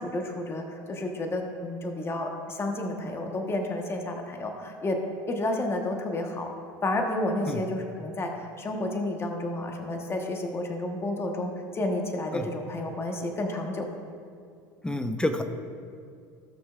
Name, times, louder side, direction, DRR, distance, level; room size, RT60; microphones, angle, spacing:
voice 1, 0.0-5.0 5.3-6.5 6.8-8.3 8.6-13.8, left 1 dB, 25° left, 3 dB, 1.2 m, -31 dB
voice 2, 14.8-15.4, left 1 dB, 10° left, 7 dB, 0.8 m, -28 dB
17.5 x 6.1 x 2.5 m, 2.3 s
hypercardioid pair, 90°, 10 cm